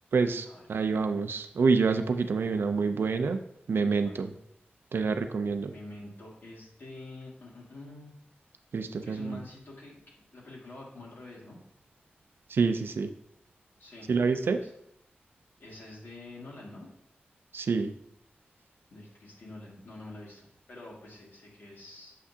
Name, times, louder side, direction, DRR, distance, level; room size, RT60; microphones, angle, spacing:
voice 1, 0.1-3.4 3.7-4.3 4.9-5.7 8.7-9.4 12.5-13.1 14.1-14.6 17.5-17.9, right 4 dB, 90° right, 8 dB, 0.5 m, -27 dB
voice 2, 5.6-8.1 9.0-10.0 10.3-11.6 13.8-14.7 15.6-16.9 18.9-22.1, left 2 dB, 70° left, -4 dB, 2.2 m, -47 dB
7.2 x 5.8 x 2.8 m, 0.75 s
wide cardioid pair, 100°, 4 cm